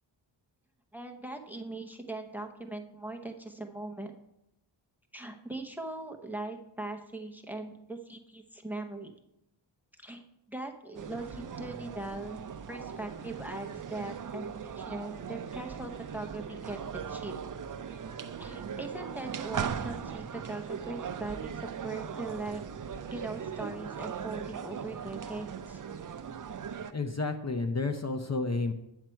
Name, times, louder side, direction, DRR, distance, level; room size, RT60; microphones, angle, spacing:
voice 1, 0.9-4.1 5.1-9.2 10.0-10.2 10.5-17.4 18.4-21.5 21.8-22.6 23.1-25.8, right 2 dB, 5° right, 6 dB, 0.7 m, -40 dB
sound 1, 10.9-26.9, right 7 dB, 45° right, 0.5 m, -39 dB
voice 2, 26.9-28.7, left 3 dB, 35° left, 6 dB, 0.6 m, -31 dB
9.0 x 7.3 x 4.5 m, 0.86 s
wide cardioid pair, 120°, 46 cm